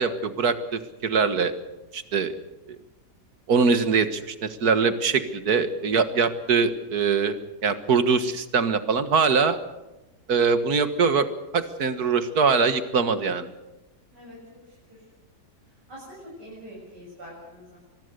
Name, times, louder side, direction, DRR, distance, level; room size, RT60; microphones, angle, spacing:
voice 1, 0.0-1.5 1.9-2.3 3.5-7.3 7.6-9.6 10.3-11.3 11.5-13.5, right 5 dB, 65° right, 11 dB, 2.1 m, -22 dB
voice 2, 14.7-15.0 15.9-17.8, equal, 80° right, -5 dB, 8.0 m, -44 dB
25.0 x 20.5 x 6.8 m, 1.0 s
omnidirectional pair, 1.8 m